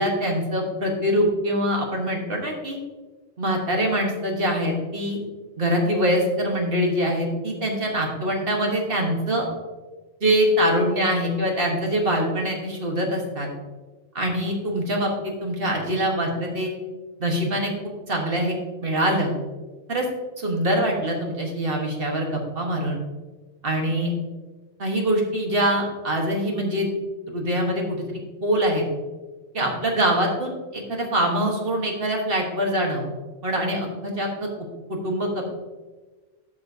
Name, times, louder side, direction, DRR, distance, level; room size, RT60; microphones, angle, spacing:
voice 1, 0.0-2.8 3.4-5.2 5.6-9.4 10.2-13.5 14.1-15.1 15.4-16.7 17.2-17.7 18.1-19.3 19.9-20.1 20.4-23.0 23.6-24.1 24.8-26.9 27.3-28.0 28.4-28.8 29.5-33.0 33.4-34.5 34.9-35.5, equal, 50° right, 1 dB, 1.4 m, -24 dB
12.5 x 5.7 x 2.7 m, 1.3 s
omnidirectional pair, 1.3 m